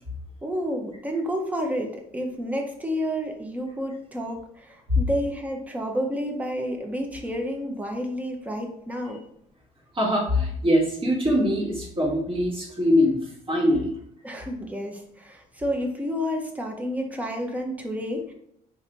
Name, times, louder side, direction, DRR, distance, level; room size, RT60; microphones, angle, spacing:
voice 1, 0.4-9.2 14.2-18.3, equal, 10° right, 2 dB, 0.7 m, -30 dB
voice 2, 9.9-13.9, equal, 30° right, -5 dB, 1.3 m, -23 dB
3.2 x 2.6 x 3.9 m, 0.72 s
cardioid pair, 115°, 17 cm